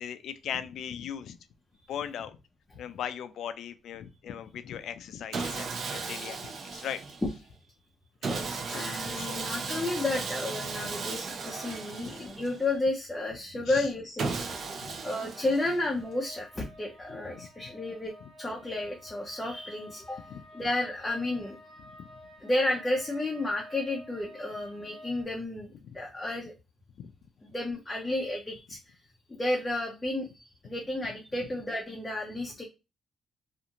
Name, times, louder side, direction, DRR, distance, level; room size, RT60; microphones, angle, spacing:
voice 1, 0.0-1.4 1.9-2.4 2.7-7.0 8.3-9.5 10.8-11.0 12.1-12.2 13.7-13.9 14.7-15.0 17.1-17.5 18.2-18.3 20.3-20.4 22.0-22.1 25.8-25.9 27.0-27.1, left 9 dB, 75° left, 11 dB, 0.3 m, -39 dB
Sawing, 5.3-7.4 8.2-12.8 14.2-16.0, right 4 dB, 60° right, 0.5 m, -36 dB
voice 2, 8.2-14.7 15.0-20.2 20.5-21.6 22.4-26.5 27.5-28.8 29.3-32.6, left 2 dB, 15° left, 0 dB, 0.6 m, -32 dB
sound 1, 15.9-25.2, equal, 90° right, 1.0 m, -50 dB
2.5 x 2.5 x 2.8 m, 0.28 s
cardioid pair, 85°, 0 cm